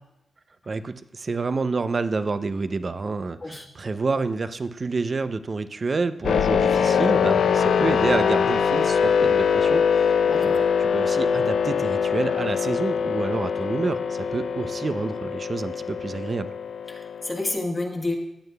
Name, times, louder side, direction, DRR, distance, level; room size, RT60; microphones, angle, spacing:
voice 1, 0.7-16.5, right 3 dB, 45° right, 12 dB, 0.5 m, -28 dB
sound 1, 6.2-17.6, left 6 dB, 80° left, 0.4 m, -23 dB
voice 2, 10.3-10.6 16.9-18.1, left 2 dB, 30° left, 2 dB, 1.3 m, -29 dB
14.5 x 9.1 x 2.3 m, 0.87 s
cardioid pair, 80°, 0 cm